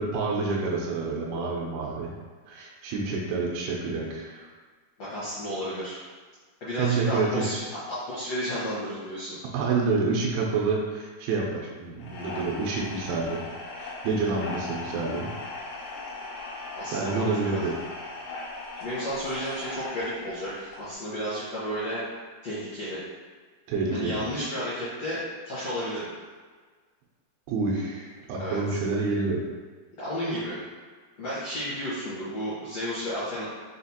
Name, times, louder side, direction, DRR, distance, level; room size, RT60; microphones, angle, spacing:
voice 1, 0.0-2.1 2.5-4.5 6.8-7.5 9.5-13.4 13.8-15.3 16.9-17.7 23.7-24.2 27.5-29.4, right 4 dB, 80° right, -3 dB, 2.4 m, -28 dB
voice 2, 5.0-6.0 6.6-9.4 12.1-12.5 16.8-17.6 18.7-22.1 22.4-23.0 23.9-26.1 28.4-28.8 30.0-30.6 31.2-33.4, equal, 70° left, -12 dB, 1.5 m, -32 dB
sound 1, 12.0-20.9, left 2 dB, 85° left, 2.9 m, -39 dB
6.3 x 2.5 x 2.7 m, 1.5 s
omnidirectional pair, 4.7 m